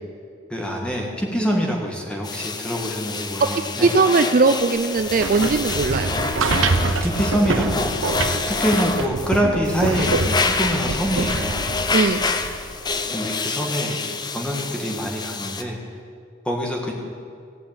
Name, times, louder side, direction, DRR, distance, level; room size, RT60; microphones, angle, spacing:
voice 1, 0.5-3.9 6.8-11.6 13.1-14.0 14.3-15.8 16.4-16.9, equal, 5° left, 0 dB, 1.6 m, -25 dB
sound 1, 2.2-15.6, left 4 dB, 20° left, 0.5 m, -27 dB
voice 2, 3.4-6.1 11.9-12.2, right 3 dB, 45° right, 8 dB, 0.4 m, -19 dB
sound 2, 5.0-13.0, right 3 dB, 80° right, 0.8 m, -26 dB
16.5 x 5.7 x 8.7 m, 2.2 s
head